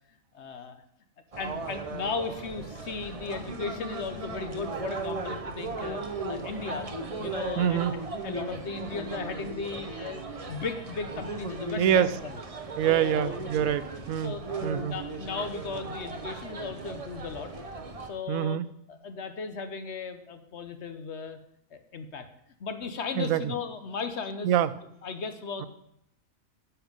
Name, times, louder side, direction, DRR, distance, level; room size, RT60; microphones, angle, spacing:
voice 1, 0.3-0.8 1.4-6.9 7.2-12.4 12.9-13.4 14.2-17.5 18.1-18.6 18.9-21.4 21.7-22.2 22.6-24.5 25.0-25.7, left 5 dB, 60° left, 8 dB, 1.1 m, -36 dB
sound 1, 1.3-18.1, right 2 dB, 30° right, 0.9 m, -37 dB
voice 2, 7.6-7.9 11.8-12.1 12.8-14.4 14.6-14.9 18.3-18.7 23.2-23.4 24.4-24.7, right 10 dB, 90° right, 15 dB, 1.0 m, -25 dB
10.0 x 7.1 x 5.2 m, 0.74 s
omnidirectional pair, 1.4 m